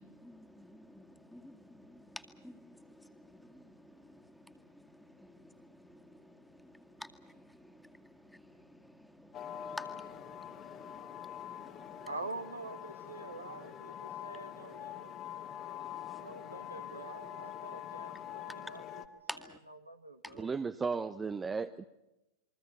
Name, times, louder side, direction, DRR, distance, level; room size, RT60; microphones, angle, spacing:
voice 1, 0.0-12.1 15.8-16.2 19.3-19.6 20.2-20.4, left 1 dB, ahead, 2.2 m, -51 dB
sound 1, 9.3-19.1, left 10 dB, 35° left, 2.1 m, -45 dB
voice 2, 12.1-15.1 16.2-19.0 19.3-20.5, right 2 dB, 80° right, 1.8 m, -46 dB
voice 3, 20.4-21.8, right 5 dB, 15° right, 0.9 m, -35 dB
29.0 x 23.0 x 5.6 m
figure-of-eight pair, 90°, 0 cm